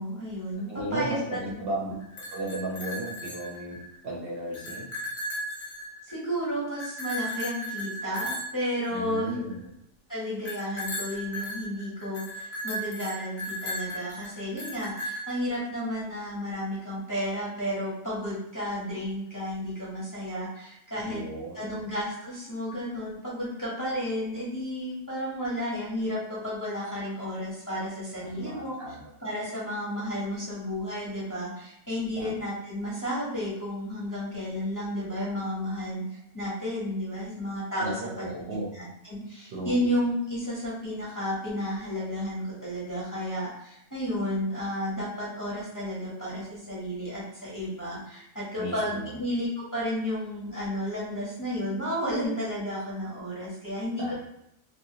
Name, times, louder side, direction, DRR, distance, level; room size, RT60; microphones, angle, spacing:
voice 1, 0.0-1.9 6.0-9.5 10.1-21.2 21.5-28.8 29.2-54.1, equal, 15° left, -8 dB, 0.8 m, -32 dB
voice 2, 0.7-2.0 2.3-3.8 4.0-4.9 8.9-9.7 21.0-21.8 28.2-29.0 32.1-32.3 37.8-38.7 39.5-39.8 48.6-49.1 54.0-54.1, right 1 dB, 55° right, -4 dB, 0.8 m, -35 dB
sound 1, 2.0-4.0 4.3-6.3 6.8-9.5 10.4-15.6, equal, 50° left, 0.8 m, -36 dB
3.1 x 2.3 x 2.7 m, 0.79 s
omnidirectional pair, 1.3 m